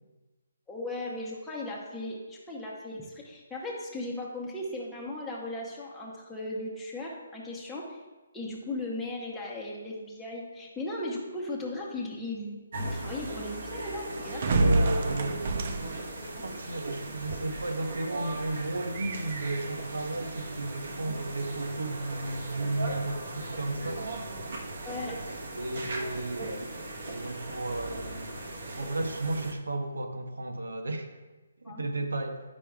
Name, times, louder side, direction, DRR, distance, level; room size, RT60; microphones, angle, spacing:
voice 1, 0.7-8.0 8.3-14.6 24.8-25.2 31.6-31.8, left 2 dB, 5° left, -6 dB, 0.9 m, -37 dB
sound 1, 12.7-29.5, right 2 dB, 65° right, 1.1 m, -38 dB
sound 2, 14.3-27.1, right 2 dB, 45° right, 0.4 m, -35 dB
voice 2, 14.5-15.7 16.2-24.3 25.5-26.8 27.1-31.1 31.6-32.4, right 2 dB, 90° right, 5 dB, 0.9 m, -33 dB
9.9 x 5.2 x 2.3 m, 1.2 s
hypercardioid pair, 155°, 0 cm